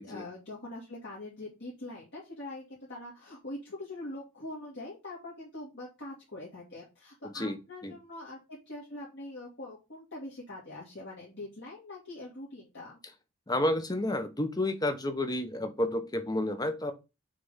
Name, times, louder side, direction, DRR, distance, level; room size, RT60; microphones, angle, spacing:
voice 1, 0.0-13.0, left 2 dB, 50° left, -5 dB, 2.2 m, -43 dB
voice 2, 13.5-16.9, left 1 dB, 15° left, 8 dB, 1.0 m, -30 dB
6.6 x 3.5 x 5.6 m, 0.26 s
head